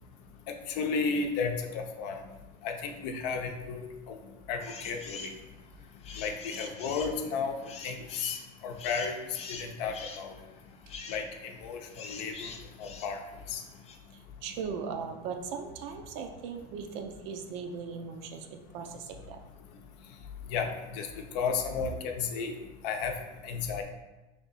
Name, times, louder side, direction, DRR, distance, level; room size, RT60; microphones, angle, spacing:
voice 1, 0.7-2.1 2.6-3.8 4.1-4.2 4.5-5.3 6.2-7.5 7.8-8.4 8.6-9.2 9.5-10.3 11.1-11.2 11.6-12.5 12.8-13.2 13.5-13.6 20.5-21.1 21.3-22.5 22.8-23.1 23.4-23.8, left 5 dB, 80° left, 4 dB, 0.6 m, -33 dB
sound 1, 4.6-5.4 5.8-14.0, left 4 dB, 30° left, 0.4 m, -44 dB
voice 2, 14.4-19.4, right 6 dB, 70° right, 5 dB, 0.5 m, -38 dB
3.4 x 2.7 x 4.0 m, 1.1 s
supercardioid pair, 115°, 21 cm